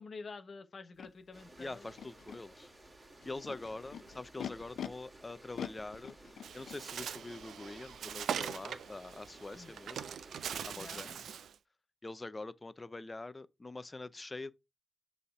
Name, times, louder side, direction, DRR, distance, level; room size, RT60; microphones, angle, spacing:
voice 1, 0.0-1.9 9.5-9.7 10.7-11.2, left 4 dB, 50° left, 1.2 m, -48 dB
Animal, 1.0-1.1 1.9-2.4 3.2-4.9 5.5-6.8, left 9 dB, 85° left, 0.6 m, -43 dB
sound 1, 1.3-11.1, right 1 dB, 25° right, 2.4 m, -56 dB
voice 2, 1.6-2.7 3.2-6.2 6.5-10.1 10.6-11.2 12.0-14.5, left 2 dB, 25° left, 0.6 m, -44 dB
Bird, 6.4-11.5, right 8 dB, 85° right, 0.5 m, -41 dB
6.7 x 3.5 x 5.0 m
cardioid pair, 85°, 0 cm